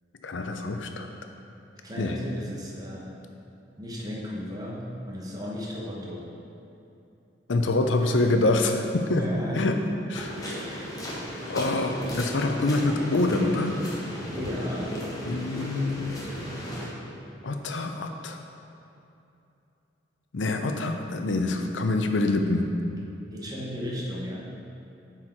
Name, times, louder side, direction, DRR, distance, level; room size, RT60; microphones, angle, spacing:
voice 1, 0.2-1.1 2.0-2.1 7.5-9.2 9.5-9.8 10.1-10.3 11.5-13.8 15.3-16.2 17.4-18.4 20.3-22.7, left 2 dB, 85° left, 5 dB, 0.6 m, -25 dB
voice 2, 1.8-3.2 3.8-6.3 8.0-8.3 9.1-9.7 10.7-10.9 14.3-14.9 23.3-24.5, equal, 20° right, -4 dB, 1.1 m, -35 dB
sound 1, 10.1-16.9, equal, 20° left, 1.2 m, -35 dB
7.7 x 4.6 x 4.5 m, 2.8 s
head